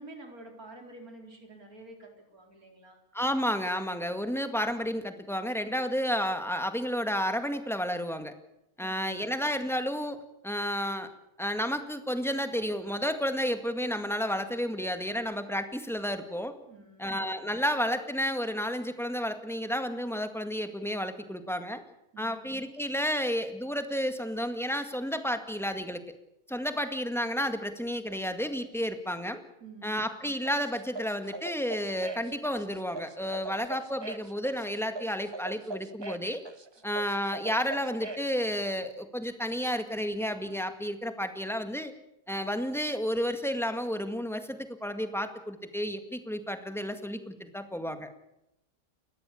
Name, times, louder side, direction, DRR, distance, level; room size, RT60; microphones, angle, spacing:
voice 1, 0.0-3.0 8.8-9.3 16.6-17.2 22.1-22.5 29.6-30.0, right 2 dB, 80° right, 2 dB, 4.7 m, -49 dB
voice 2, 3.1-8.3 8.8-11.1 11.4-16.6 17.0-21.8 22.2-26.0 26.5-29.4 29.8-36.4 36.8-41.9 42.3-48.1, equal, ahead, 7 dB, 1.8 m, -31 dB
sound 1, 30.5-38.3, right 2 dB, 20° right, 0.8 m, -41 dB
30.0 x 14.0 x 8.6 m, 0.84 s
omnidirectional pair, 1.5 m